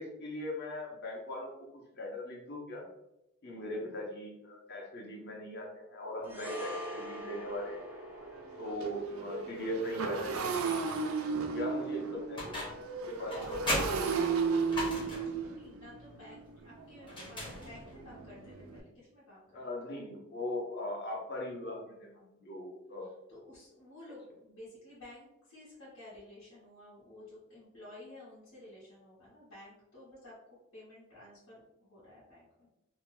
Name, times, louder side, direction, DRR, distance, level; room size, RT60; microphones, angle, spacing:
voice 1, 0.0-2.8 3.4-7.8 8.6-10.5 11.5-12.7 13.1-13.6 19.5-23.1, left 1 dB, 55° left, -1 dB, 0.8 m, -40 dB
sound 1, 6.2-14.7 15.0-15.2, equal, 10° right, 0.5 m, -47 dB
Motorcycle, 6.2-6.3 6.8-6.9 7.2-18.8, right 5 dB, 85° right, 0.4 m, -35 dB
sound 2, 12.4-12.9 13.3-15.4 17.1-18.0, left 1 dB, 25° left, 0.8 m, -36 dB
voice 2, 14.9-19.7 23.3-30.3 30.7-32.7, left 1 dB, 85° left, -11 dB, 1.1 m, -53 dB
2.8 x 2.1 x 3.1 m, 0.89 s
head